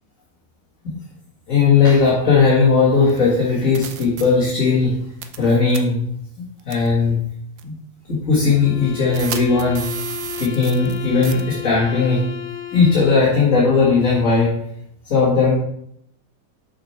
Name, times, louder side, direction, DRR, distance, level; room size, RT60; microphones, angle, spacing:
voice 1, 1.5-5.0 5.4-6.0 6.7-7.2 7.6-7.7 8.1-9.9 10.4-12.3 12.7-14.6 15.0-15.6, left 4 dB, 45° left, -7 dB, 2.2 m, -17 dB
sound 1, 3.1-3.2 3.7-4.2 5.2-5.4 5.7-5.8 6.7-6.9 7.6-7.7 9.1-11.0 11.2-11.4, right 9 dB, 80° right, 1.4 m, -31 dB
sound 2, 8.5-13.5, left 10 dB, 75° left, 1.4 m, -33 dB
6.6 x 5.9 x 4.3 m, 0.71 s
omnidirectional pair, 2.0 m